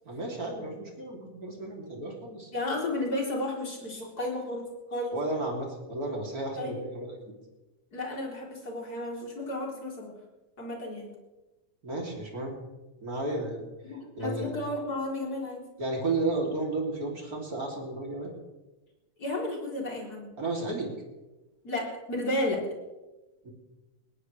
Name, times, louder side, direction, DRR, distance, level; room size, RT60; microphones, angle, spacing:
voice 1, 0.1-2.5 5.1-7.3 11.8-12.6 13.0-13.6 14.2-14.5 15.8-18.3 20.4-20.9 23.4-23.5, right 2 dB, 30° right, -1 dB, 3.6 m, -33 dB
voice 2, 2.5-5.1 6.6-6.7 7.9-10.1 10.6-11.1 13.9-15.6 19.2-20.3 21.6-22.6, left 1 dB, 30° left, -2 dB, 4.2 m, -33 dB
20.0 x 19.0 x 3.4 m, 1.1 s
omnidirectional pair, 3.4 m